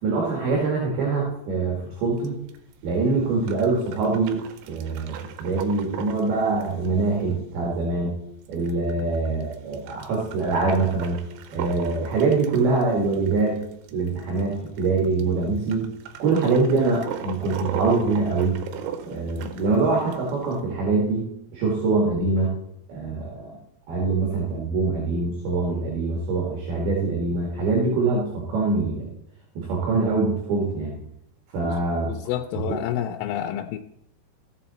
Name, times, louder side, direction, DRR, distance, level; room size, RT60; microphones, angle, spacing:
voice 1, 0.0-2.3 2.8-4.4 4.7-8.1 8.5-11.2 11.5-13.6 13.9-15.9 16.2-18.6 19.0-22.5 22.9-23.6 23.9-29.1 29.6-31.0 31.5-32.2 32.7-32.8, right 3 dB, 60° right, -2 dB, 3.9 m, -24 dB
sound 1, 2.2-20.6, right 8 dB, 90° right, 3.4 m, -39 dB
voice 2, 32.1-33.8, left 11 dB, 90° left, 5 dB, 3.1 m, -29 dB
15.0 x 7.4 x 4.4 m, 0.77 s
omnidirectional pair, 5.4 m